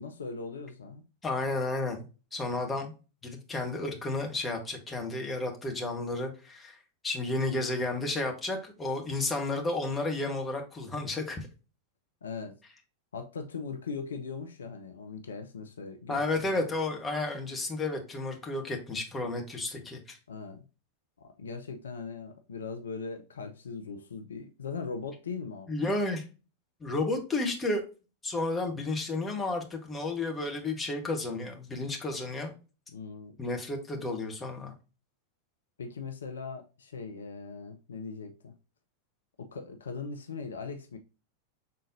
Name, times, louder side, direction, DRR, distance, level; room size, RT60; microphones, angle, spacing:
voice 1, 0.0-1.0 12.2-12.6 13.1-16.6 20.3-20.6 21.2-25.7 32.9-33.3 35.8-38.5 39.4-41.0, left 4 dB, 70° left, 0.5 m, -40 dB
voice 2, 1.2-2.0 2.3-2.9 3.2-6.8 7.0-11.4 16.1-20.2 25.7-26.2 26.8-27.8 28.2-32.5 33.4-34.7, left 2 dB, 15° left, 1.2 m, -32 dB
5.5 x 3.7 x 2.6 m
figure-of-eight pair, 90°, 0 cm